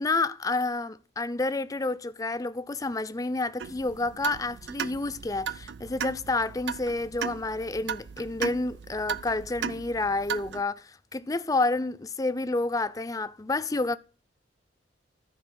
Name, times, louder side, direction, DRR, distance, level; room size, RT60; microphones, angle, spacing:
voice 1, 0.0-14.0, left 3 dB, 20° left, 0.4 m, -29 dB
sound 1, 3.6-10.6, right 7 dB, 65° right, 0.5 m, -36 dB
13.5 x 4.8 x 6.1 m
head